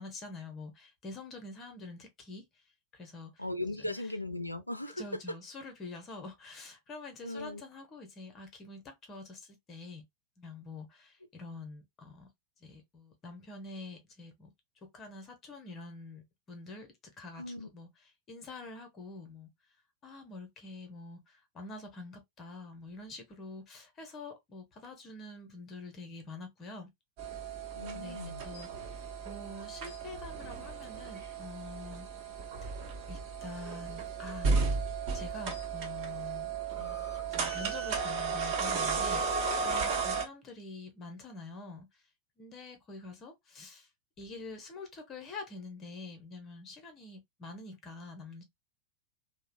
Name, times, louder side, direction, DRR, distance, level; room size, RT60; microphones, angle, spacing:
voice 1, 0.0-2.6 2.9-3.4 3.8-4.0 5.0-10.0 10.4-12.3 12.6-14.5 14.8-17.9 18.3-19.5 20.0-26.9 27.9-32.1 32.6-32.8 33.1-34.6 35.1-36.6 37.3-42.0 42.4-43.9 44.2-48.4, left 3 dB, 30° left, 0.8 m, -46 dB
voice 2, 3.4-5.0 7.2-7.6 17.4-17.7 27.8-28.4, left 1 dB, 90° left, 0.3 m, -38 dB
sound 1, 27.2-40.2, right 5 dB, 45° right, 0.9 m, -34 dB
2.7 x 2.1 x 2.4 m
figure-of-eight pair, 90°, 0 cm